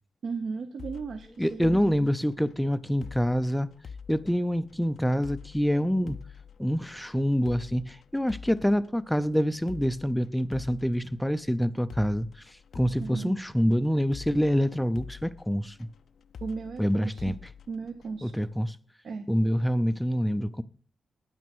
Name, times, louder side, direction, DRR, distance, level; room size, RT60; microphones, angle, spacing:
voice 1, 0.2-2.1 13.0-13.4 16.4-17.4 17.7-18.3 19.0-19.3, right 4 dB, 60° right, 1.0 m, -36 dB
sound 1, 0.8-18.5, left 6 dB, 60° left, 0.5 m, -47 dB
voice 2, 1.4-3.7 4.1-6.2 6.6-12.3 12.7-15.9 16.8-17.4 18.2-18.8 19.3-20.6, equal, ahead, 0.4 m, -26 dB
9.6 x 9.3 x 6.1 m
wide cardioid pair, 170°, 0 cm